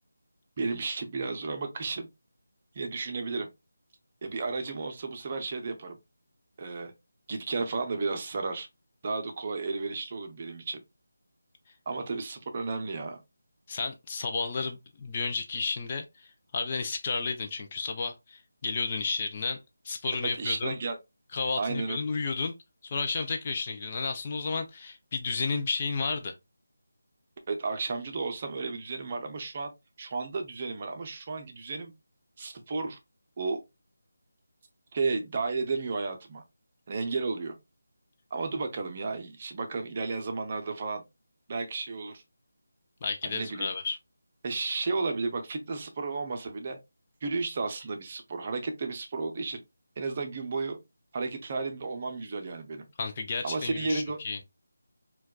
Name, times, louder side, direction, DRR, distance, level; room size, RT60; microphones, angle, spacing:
voice 1, 0.6-2.1 2.7-3.5 4.2-6.0 6.6-6.9 7.3-8.7 9.0-10.8 11.9-13.2 20.3-21.0 21.6-22.0 27.5-29.7 30.0-31.9 32.4-33.0 33.4-33.6 34.9-36.4 36.9-37.5 38.3-41.0 41.5-42.2 43.2-43.7 44.4-46.8 47.2-49.6 50.0-50.8 51.1-52.9 53.4-54.2, right 4 dB, 35° right, 0.6 m, -33 dB
voice 2, 13.7-19.6 19.8-20.7 21.3-22.5 22.8-26.3 43.0-44.0 53.0-54.4, left 4 dB, 30° left, 0.5 m, -32 dB
4.4 x 2.3 x 2.2 m
figure-of-eight pair, 165°, 0 cm